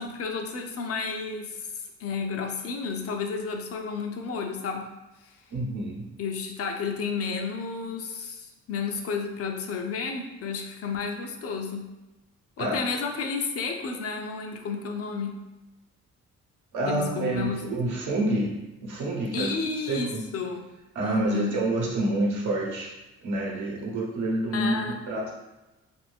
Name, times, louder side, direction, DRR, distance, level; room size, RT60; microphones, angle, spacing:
voice 1, 0.0-4.9 6.2-11.9 12.6-15.4 16.9-17.6 18.3-18.4 19.3-20.7 21.0-21.6 24.5-25.0, left 5 dB, 50° left, 3 dB, 0.5 m, -31 dB
voice 2, 5.5-6.1 12.6-12.8 16.7-19.5 19.9-20.2 20.9-22.9 23.2-25.3, right 2 dB, 75° right, -3 dB, 1.0 m, -28 dB
2.6 x 2.5 x 3.3 m, 1.0 s
cardioid pair, 90°, 30 cm